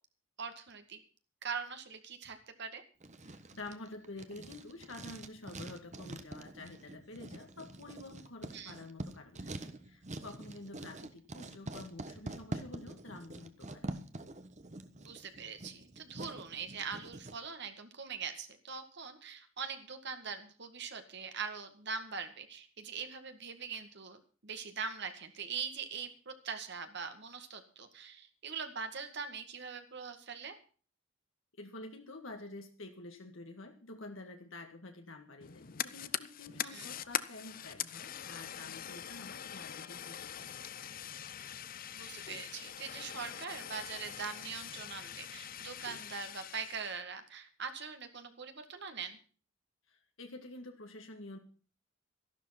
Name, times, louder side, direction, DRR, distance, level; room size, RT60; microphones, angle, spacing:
voice 1, 0.4-1.0 1.4-2.8 8.5-8.7 15.0-30.6 36.7-36.9 41.9-49.2, right 6 dB, 60° right, 7 dB, 2.0 m, -42 dB
Writing, 3.0-17.4, right 1 dB, 35° right, 1.3 m, -45 dB
voice 2, 3.2-13.9 31.6-40.5 49.9-51.4, left 2 dB, 75° left, 4 dB, 1.9 m, -49 dB
Fire, 35.4-47.0, left 10 dB, 45° left, 0.6 m, -43 dB
13.0 x 12.0 x 5.9 m, 0.39 s
head